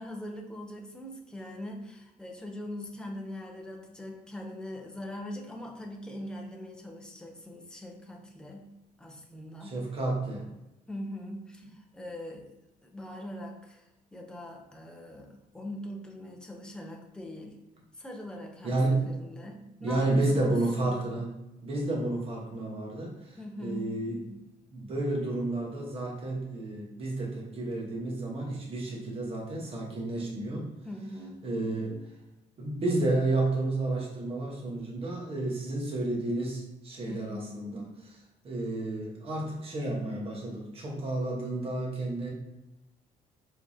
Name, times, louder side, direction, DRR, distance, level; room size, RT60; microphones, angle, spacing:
voice 1, 0.0-8.7 9.0-9.8 10.9-12.5 12.8-17.6 18.0-20.7 23.4-24.0 30.8-31.5 37.0-37.6, left 1 dB, 5° left, 0 dB, 0.6 m, -42 dB
voice 2, 9.6-10.5 18.6-19.0 19.8-21.3 21.6-24.4 24.7-30.7 31.4-32.0 32.6-38.2 38.4-42.3, right 2 dB, 40° right, -2 dB, 1.2 m, -31 dB
4.8 x 3.7 x 2.7 m, 0.94 s
cardioid pair, 170°, 15 cm